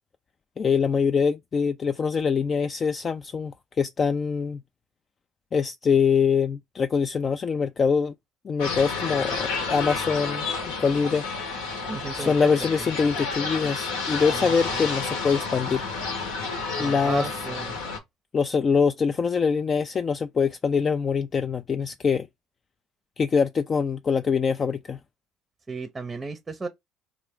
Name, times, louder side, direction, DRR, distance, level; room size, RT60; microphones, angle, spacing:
voice 1, 0.6-4.6 5.5-8.1 8.4-10.5 10.8-11.2 12.1-15.9 16.8-17.3 18.3-22.3 23.2-25.0, left 6 dB, 35° left, 0.3 m, -24 dB
sound 1, 8.6-18.0, left 4 dB, 80° left, 1.0 m, -30 dB
voice 2, 11.9-12.9 14.3-14.8 16.7-17.8 25.7-26.7, right 4 dB, 25° right, 0.6 m, -35 dB
3.5 x 2.4 x 3.4 m
hypercardioid pair, 75°, 0 cm